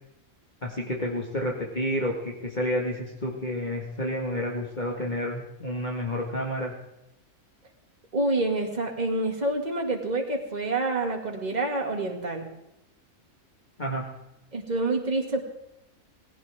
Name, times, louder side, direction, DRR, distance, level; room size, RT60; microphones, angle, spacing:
voice 1, 0.6-6.7 13.8-14.0, equal, 30° left, -1 dB, 2.0 m, -30 dB
voice 2, 8.1-12.5 14.5-15.4, right 2 dB, 30° right, 2 dB, 2.3 m, -27 dB
18.5 x 17.5 x 3.6 m, 0.90 s
omnidirectional pair, 1.5 m